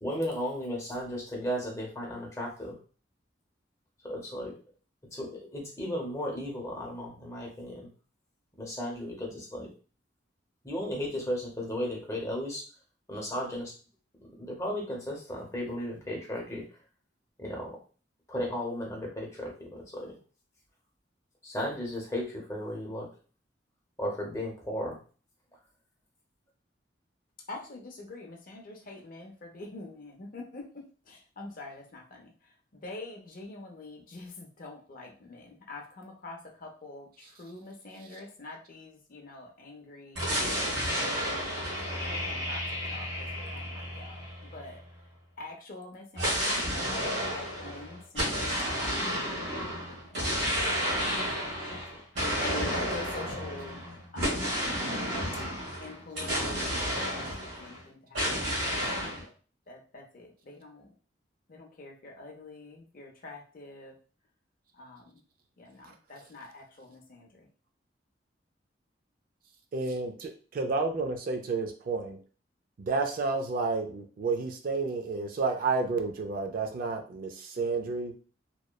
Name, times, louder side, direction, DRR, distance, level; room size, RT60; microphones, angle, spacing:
voice 1, 0.0-2.8 4.0-4.5 5.1-7.9 8.6-9.7 10.6-12.6 13.1-13.7 14.2-16.6 17.4-17.8 18.3-20.2 21.4-23.1 24.0-25.0, equal, 15° left, -2 dB, 0.7 m, -35 dB
voice 2, 27.5-32.3 32.7-40.3 40.9-44.2 44.5-44.8 45.4-46.5 46.9-50.2 51.3-53.8 54.1-54.7 55.8-58.3 59.1-59.3 59.7-60.9 61.5-63.9 64.7-65.1 65.6-67.5, left 2 dB, 50° left, 1 dB, 0.5 m, -45 dB
sound 1, 40.1-44.9 46.1-57.8 58.1-59.2, equal, 70° right, 1.3 m, -31 dB
voice 3, 69.7-72.2 72.8-78.1, right 4 dB, 50° right, 5 dB, 0.3 m, -31 dB
2.9 x 2.0 x 2.2 m, 0.38 s
head